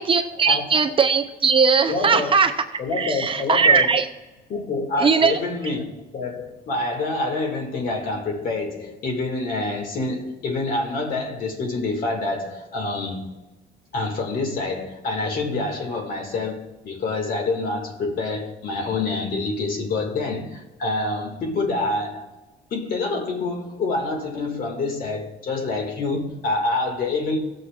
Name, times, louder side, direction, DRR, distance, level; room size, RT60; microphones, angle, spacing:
voice 1, 0.0-2.5 3.0-4.1 5.0-5.3, right 5 dB, 30° right, 0.5 m, -19 dB
voice 2, 1.9-2.4 2.8-4.0 4.5-13.3 13.9-22.3 22.7-27.4, left 3 dB, 50° left, 1.9 m, -27 dB
17.0 x 6.9 x 2.3 m
cardioid pair, 150°, 19 cm